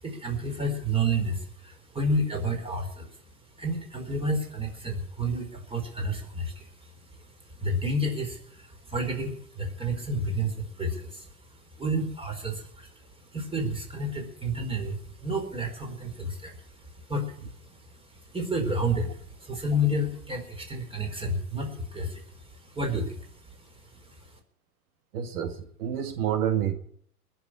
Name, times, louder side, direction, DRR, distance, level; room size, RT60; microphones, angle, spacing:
voice 1, 0.0-3.2 3.6-11.4 11.7-24.3, right 1 dB, 10° right, 4.5 m, -31 dB
voice 2, 25.1-26.7, right 9 dB, 75° right, 2.1 m, -28 dB
20.5 x 7.0 x 9.9 m
hypercardioid pair, 115°, 45 cm